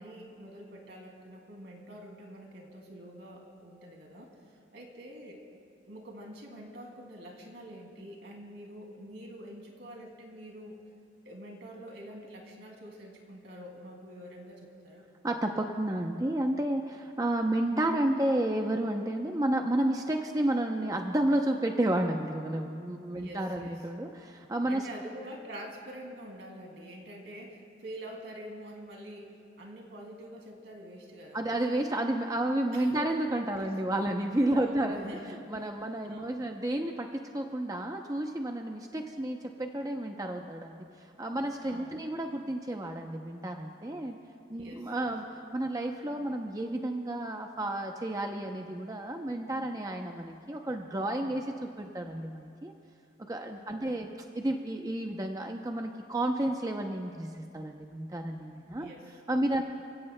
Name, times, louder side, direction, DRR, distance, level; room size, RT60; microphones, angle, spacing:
voice 1, 0.0-5.4 5.8-10.8 11.2-15.1 23.1-23.8 24.7-31.4 32.7-33.0 34.5-35.7 36.0-36.4 41.6-42.0 44.5-45.1 53.7-54.0 58.7-59.1 59.5-59.6, equal, 75° right, 0 dB, 2.5 m, -46 dB
voice 2, 15.2-24.9 31.3-40.8 41.2-44.2 44.5-52.7 53.3-54.1 54.3-58.9 59.3-59.6, right 1 dB, 20° right, 3 dB, 0.6 m, -31 dB
28.5 x 16.0 x 2.2 m, 2.5 s
head